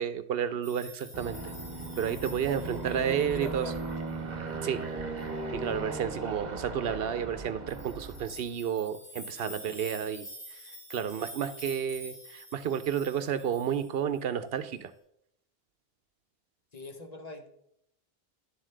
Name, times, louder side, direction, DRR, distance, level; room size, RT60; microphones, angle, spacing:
voice 1, 0.0-1.5 2.0-3.7 4.6-4.9 5.5-10.3 10.9-14.9, right 8 dB, 70° right, 12 dB, 0.8 m, -31 dB
sound 1, 0.6-4.1 4.7-4.8 5.2-5.3 7.7-14.3, equal, 75° left, 3.4 m, -47 dB
Aircraft, 1.1-8.5, right 3 dB, 45° right, 1.2 m, -38 dB
voice 2, 2.5-3.8 16.7-17.5, left 2 dB, 40° left, 5 dB, 1.1 m, -42 dB
10.5 x 7.5 x 3.3 m, 0.76 s
omnidirectional pair, 1.0 m